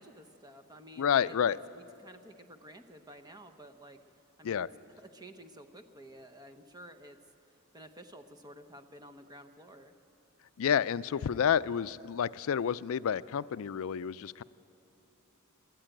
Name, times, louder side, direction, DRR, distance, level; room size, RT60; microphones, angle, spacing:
voice 1, 0.0-4.0 4.4-4.7 5.0-7.2 7.7-9.9, right 1 dB, 20° right, 8 dB, 0.9 m, -52 dB
voice 2, 1.0-1.6 4.4-4.7 10.6-14.4, left 8 dB, 65° left, 17 dB, 0.4 m, -29 dB
22.0 x 13.5 x 9.1 m, 2.9 s
head